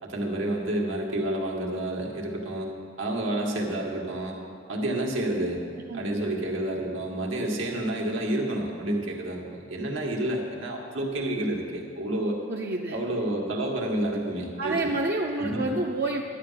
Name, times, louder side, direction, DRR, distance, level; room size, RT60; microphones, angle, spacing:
voice 1, 0.0-2.7 3.0-4.4 4.7-5.6 5.9-12.4 12.9-14.9 15.4-15.8, right 1 dB, 85° right, -1 dB, 1.9 m, -29 dB
voice 2, 12.5-13.0 14.6-16.2, right 2 dB, 55° right, -1 dB, 0.7 m, -28 dB
12.0 x 9.2 x 5.8 m, 2.3 s
head